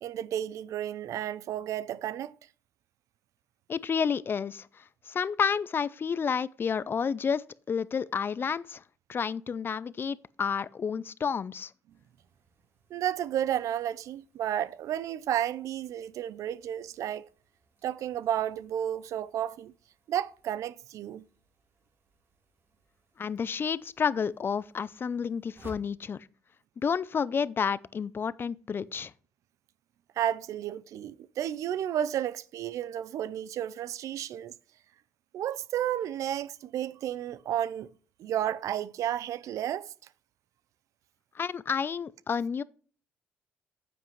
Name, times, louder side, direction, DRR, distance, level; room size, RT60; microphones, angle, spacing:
voice 1, 0.0-2.3 12.9-17.3 17.8-19.7 20.1-21.3 30.2-34.5 35.3-37.9 38.2-39.9, right 11 dB, 70° right, 0.5 m, -32 dB
voice 2, 3.7-8.8 9.1-11.7 23.2-26.3 26.8-29.1 41.3-42.6, left 6 dB, 40° left, 0.4 m, -30 dB
sound 1, 11.9-25.9, right 2 dB, 45° right, 3.0 m, -59 dB
9.3 x 7.8 x 3.1 m
cardioid pair, 80°, 6 cm